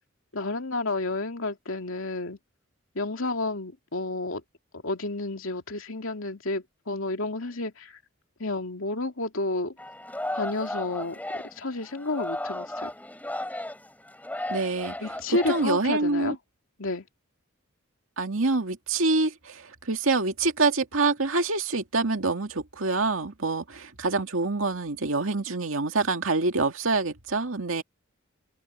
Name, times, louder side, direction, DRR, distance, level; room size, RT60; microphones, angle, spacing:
voice 1, 0.3-2.4 2.9-4.4 4.7-8.0 8.4-9.7 10.3-12.9 15.0-16.4 16.8-17.1, left 2 dB, 75° left, 2.7 m, -31 dB
Singing, 9.8-16.2, left 1 dB, 10° left, 4.9 m, -35 dB
voice 2, 14.5-14.9 15.5-16.4 18.2-27.8, right 3 dB, 75° right, 2.3 m, -26 dB
open air
head